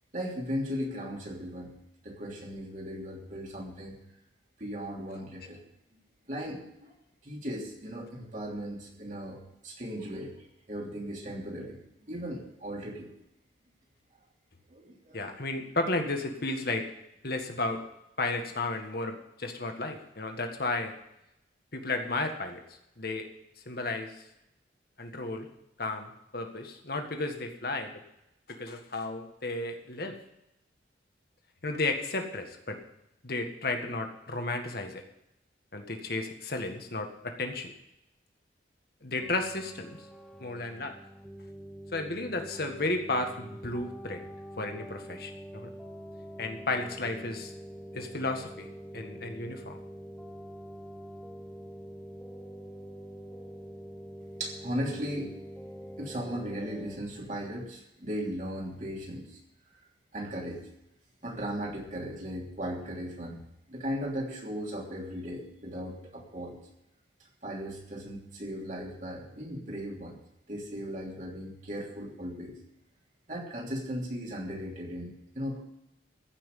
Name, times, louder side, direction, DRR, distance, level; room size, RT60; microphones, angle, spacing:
voice 1, 0.1-1.8 2.0-4.0 4.6-5.6 6.3-6.9 7.2-10.3 10.7-11.8 12.1-13.1 14.7-15.2 54.4-55.3 56.0-59.4 60.1-60.7 61.2-63.4 63.7-66.6 67.4-70.2 70.5-72.6 73.3-75.6, equal, 45° right, -1 dB, 3.2 m, -37 dB
voice 2, 15.1-16.9 17.2-17.8 18.2-20.9 21.7-22.6 23.0-23.3 23.7-24.3 25.0-25.5 25.8-27.9 28.5-30.2 31.6-32.8 33.2-35.0 35.7-37.7 39.0-40.1 40.4-40.9 41.9-44.3 44.6-45.7 46.4-47.5 47.9-48.7 48.9-49.8, left 2 dB, 55° left, 4 dB, 1.8 m, -33 dB
sound 1, 39.2-57.0, equal, 5° left, 0.8 m, -45 dB
15.0 x 6.2 x 9.4 m, 0.84 s
head